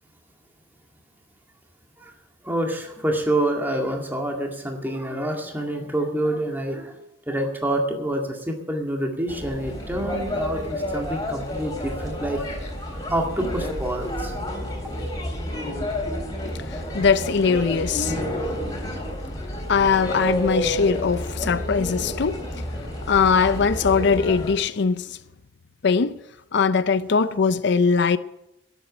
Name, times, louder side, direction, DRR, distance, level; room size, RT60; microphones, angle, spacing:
voice 1, 2.4-7.0 7.3-14.3, right 1 dB, 10° right, 2.0 m, -27 dB
sound 1, 9.3-24.5, equal, 20° left, 3.6 m, -30 dB
voice 2, 16.7-18.1 19.7-22.4 23.1-25.2 25.8-26.2 26.5-28.2, left 5 dB, 65° left, 0.5 m, -21 dB
12.5 x 8.2 x 9.8 m
head